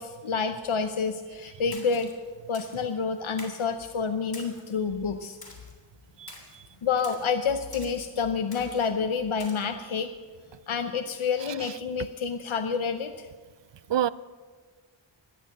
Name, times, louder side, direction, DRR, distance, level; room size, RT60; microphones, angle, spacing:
voice 1, 0.0-2.1 2.5-5.4 6.8-10.1 10.7-13.3, left 5 dB, 80° left, 7 dB, 0.8 m, -28 dB
Splash splatter, 1.7-2.1 2.5-2.9 3.4-3.7 4.3-4.7 5.4-5.7 6.3-6.6 7.0-7.3 7.7-8.1 8.5-8.9 9.4-9.6, left 2 dB, 50° left, 3.2 m, -46 dB
voice 2, 6.2-6.6 11.6-11.7 13.9-14.1, right 10 dB, 65° right, 18 dB, 0.6 m, -28 dB
18.0 x 11.5 x 6.6 m, 1.5 s
wide cardioid pair, 75°, 48 cm